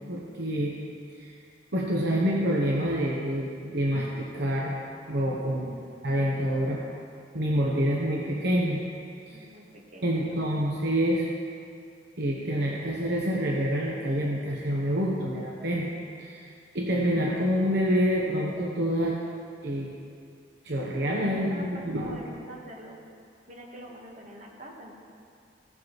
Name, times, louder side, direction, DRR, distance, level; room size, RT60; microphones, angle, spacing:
voice 1, 0.1-0.7 1.2-1.3 1.7-4.7 5.1-5.7 6.0-6.8 7.3-8.8 9.3-9.5 10.0-11.3 12.2-15.9 16.2-19.2 19.6-19.9 20.6-22.2, equal, 65° right, -2 dB, 1.0 m, -27 dB
voice 2, 5.8-6.2 9.3-10.6 21.3-23.0 23.5-25.0, right 1 dB, 45° right, -2 dB, 1.5 m, -46 dB
16.0 x 7.6 x 3.1 m, 2.3 s
head